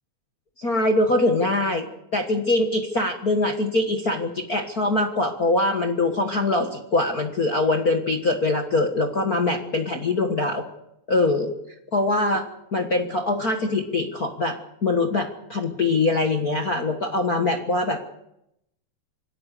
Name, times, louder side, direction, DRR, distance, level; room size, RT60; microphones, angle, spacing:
voice 1, 0.6-1.8 2.1-10.6 11.1-11.5 11.9-12.4 12.7-18.2, left 2 dB, 55° left, 2 dB, 1.0 m, -23 dB
26.0 x 18.5 x 6.7 m, 0.83 s
omnidirectional pair, 4.1 m